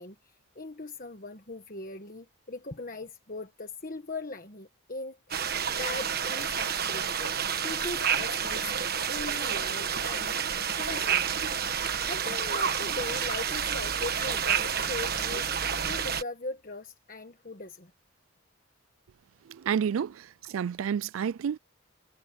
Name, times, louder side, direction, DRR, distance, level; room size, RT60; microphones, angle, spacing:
voice 1, 0.0-5.2 5.8-7.3 7.6-8.8 9.0-11.3 12.1-15.5 15.9-17.9, left 3 dB, 40° left, 1.4 m, -40 dB
sound 1, 5.3-16.2, right 7 dB, 45° right, 1.4 m, -29 dB
voice 2, 19.5-21.6, right 7 dB, 75° right, 0.3 m, -30 dB
head